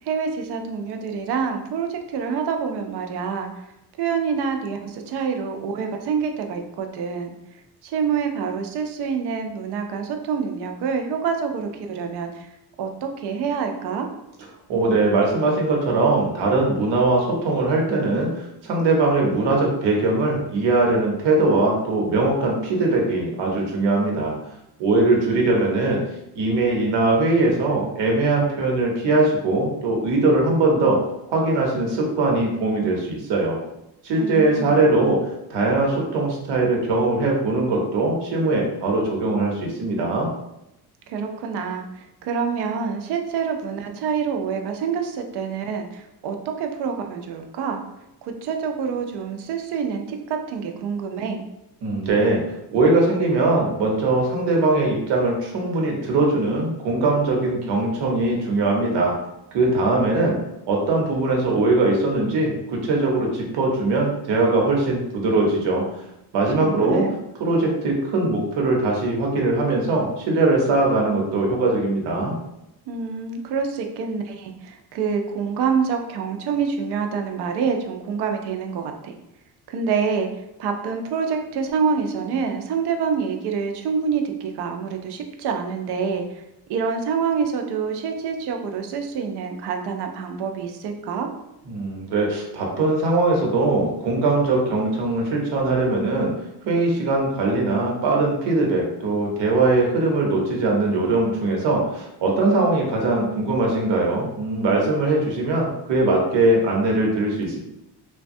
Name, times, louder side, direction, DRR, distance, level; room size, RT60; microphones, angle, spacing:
voice 1, 0.0-3.5 4.0-7.3 7.8-12.5 12.8-14.1 34.1-34.8 41.1-47.8 48.2-51.5 66.6-67.2 72.9-79.1 79.7-86.4 86.7-91.3, right 6 dB, 70° right, 4 dB, 0.5 m, -26 dB
voice 2, 14.7-24.3 24.8-26.0 26.4-31.0 31.3-33.6 34.0-35.2 35.5-40.3 51.8-52.4 52.7-59.1 59.5-60.4 60.7-65.8 66.3-67.0 67.4-72.4 91.7-96.3 96.6-107.6, right 2 dB, 90° right, -1 dB, 0.9 m, -21 dB
3.2 x 2.2 x 2.6 m, 0.86 s
cardioid pair, 170°, 41 cm